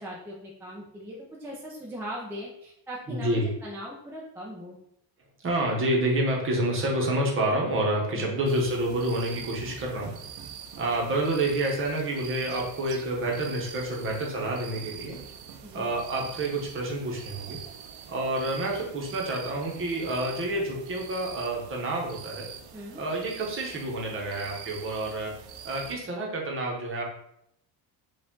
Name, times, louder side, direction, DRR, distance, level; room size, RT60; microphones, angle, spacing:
voice 1, 0.0-4.8 8.2-8.4 15.6-15.9 22.7-23.0, equal, 5° right, -5 dB, 0.3 m, -39 dB
voice 2, 3.1-3.5 5.4-10.2 10.8-15.2 15.7-17.6 18.1-22.5 22.9-25.4 25.6-27.0, right 1 dB, 30° right, -1 dB, 0.9 m, -28 dB
sound 1, 8.4-26.0, right 8 dB, 60° right, 0.6 m, -44 dB
4.7 x 2.4 x 3.7 m, 0.77 s
cardioid pair, 170°, 44 cm